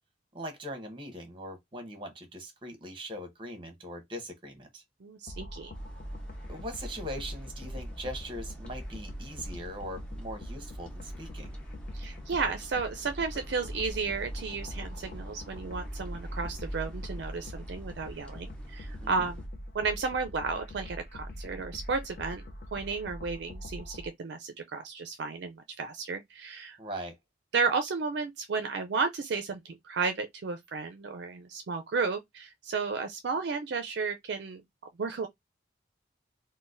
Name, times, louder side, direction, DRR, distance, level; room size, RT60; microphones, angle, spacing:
voice 1, 0.3-4.8 6.5-11.5 19.0-19.3 26.8-27.1, equal, 25° right, 0.9 m, -41 dB
voice 2, 5.0-5.7 11.9-19.4 19.7-22.4 22.7-26.8 27.5-34.6 35.0-35.3, right 4 dB, 65° right, 0.4 m, -33 dB
sound 1, 5.3-24.1, equal, 50° left, 0.6 m, -43 dB
sound 2, 5.7-19.5, equal, 5° left, 0.6 m, -44 dB
3.8 x 2.1 x 2.5 m
head